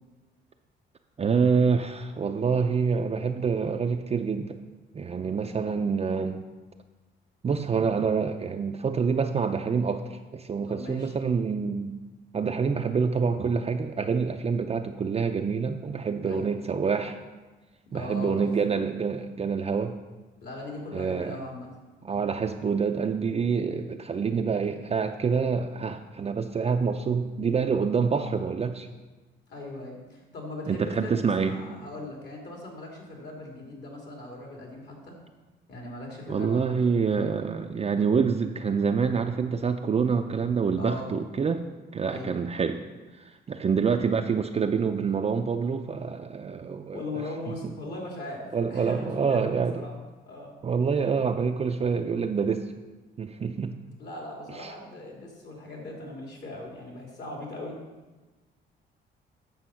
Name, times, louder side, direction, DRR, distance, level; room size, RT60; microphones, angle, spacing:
voice 1, 1.2-4.6 4.9-6.4 7.4-12.0 12.3-17.2 17.9-19.9 20.9-21.4 22.0-28.9 30.7-31.6 36.3-41.6 41.9-42.8 43.5-47.0 48.5-49.8 50.6-52.7 53.2-53.7 54.6-54.7, right 5 dB, 30° right, 4 dB, 0.5 m, -26 dB
voice 2, 10.6-11.1 16.2-16.5 17.9-18.5 20.4-21.7 24.6-24.8 29.5-35.2 35.7-37.3 40.8-41.1 42.1-42.3 46.9-50.0 50.3-50.5 54.0-57.8, left 2 dB, 60° left, -1 dB, 3.0 m, -39 dB
8.0 x 6.8 x 5.7 m, 1.2 s
cardioid pair, 90°, 20 cm